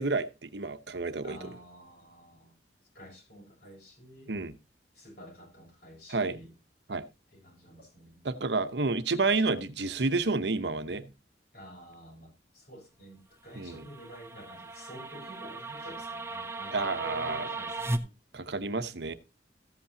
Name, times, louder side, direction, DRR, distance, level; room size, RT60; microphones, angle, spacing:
voice 1, 0.0-1.4 4.3-4.5 6.1-6.4 6.9-7.0 8.2-11.1 13.6-13.8 16.7-17.5 18.3-19.1, right 3 dB, 70° right, 0.9 m, -30 dB
voice 2, 1.2-2.6 2.9-4.3 4.9-6.5 7.3-8.3 11.5-18.1, equal, 60° left, 6.3 m, -49 dB
sound 1, 13.5-18.0, right 2 dB, 15° right, 0.7 m, -37 dB
14.5 x 8.4 x 2.8 m
head